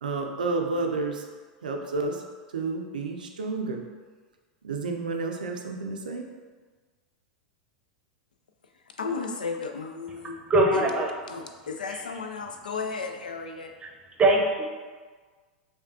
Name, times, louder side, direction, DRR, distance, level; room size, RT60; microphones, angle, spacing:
voice 1, 0.0-1.3 1.6-2.2 2.5-3.8 4.6-6.3, right 3 dB, 80° right, 3 dB, 0.5 m, -30 dB
voice 2, 9.0-10.4 10.7-10.9 11.3-13.7, left 4 dB, 80° left, 5 dB, 0.4 m, -34 dB
voice 3, 10.5-11.1 11.9-12.0 14.2-14.6, right 2 dB, 25° right, 0 dB, 0.7 m, -21 dB
5.0 x 2.3 x 2.7 m, 1.4 s
hypercardioid pair, 95°, 4 cm